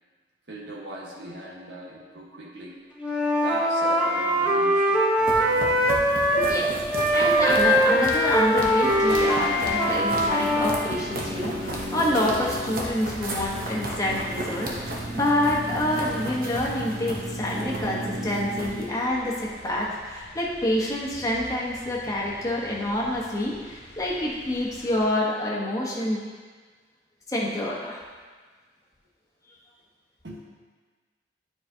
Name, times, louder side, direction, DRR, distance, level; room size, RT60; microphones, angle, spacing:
voice 1, 0.5-2.8 3.4-5.1 6.4-6.7 7.9-8.0 18.8-19.0 22.0-22.2 30.2-30.4, equal, 85° right, -3 dB, 1.4 m, -39 dB
Wind instrument woodwind instrument, 3.0-6.6 6.9-10.8, equal, 5° right, 0.8 m, -22 dB
sound 1, 5.2-18.9, right 1 dB, 55° right, 1.0 m, -33 dB
voice 2, 7.1-26.2 27.3-28.0, left 1 dB, 20° left, -4 dB, 1.1 m, -27 dB
sound 2, 8.9-25.1, left 1 dB, 70° left, 1.3 m, -42 dB
9.4 x 4.9 x 2.8 m, 1.4 s
head